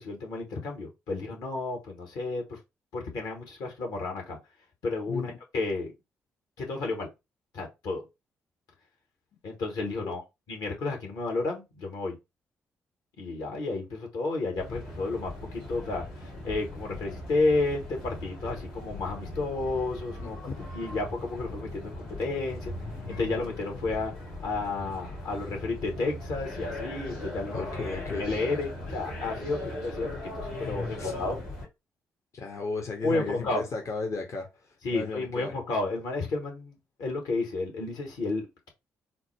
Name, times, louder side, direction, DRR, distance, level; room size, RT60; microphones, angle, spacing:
voice 1, 0.0-2.6 2.9-4.4 4.8-5.9 6.6-7.1 7.5-8.0 9.4-10.2 10.5-12.2 13.2-20.4 20.7-22.7 23.1-24.1 24.4-27.7 28.1-31.4 33.0-33.6 34.8-38.7, left 3 dB, 65° left, 1.3 m, -31 dB
voice 2, 5.1-5.4 10.0-10.1 20.2-20.6 27.5-28.3 31.0-31.1 32.3-35.5, left 4 dB, 45° left, 0.8 m, -35 dB
sound 1, 14.6-31.7, left 1 dB, 85° left, 2.1 m, -39 dB
3.9 x 2.2 x 3.3 m
figure-of-eight pair, 40°, 7 cm